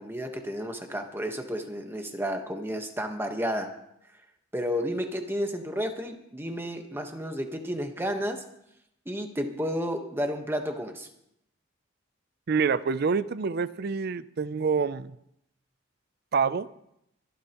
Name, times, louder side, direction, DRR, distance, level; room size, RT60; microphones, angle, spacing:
voice 1, 0.0-3.7 4.5-8.4 9.0-11.1, equal, 10° right, 1.2 m, -31 dB
voice 2, 12.5-15.2 16.3-16.7, right 5 dB, 50° right, 0.4 m, -27 dB
24.5 x 11.0 x 3.0 m
head